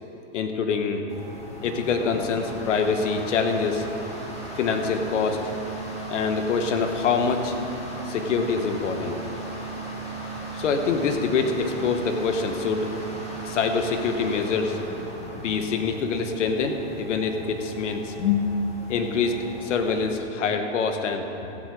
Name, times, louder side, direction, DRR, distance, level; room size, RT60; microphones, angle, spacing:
voice 1, 0.3-1.0 1.6-3.8 4.6-5.4 6.1-7.5 8.1-9.2 10.5-12.9 13.4-14.8 15.3-18.5 18.9-21.3, left 5 dB, 75° left, 6 dB, 1.3 m, -25 dB
sound 1, 1.1-20.1, right 2 dB, 15° left, 2.2 m, -37 dB
15.0 x 8.0 x 4.9 m, 2.8 s
hypercardioid pair, 120°, 37 cm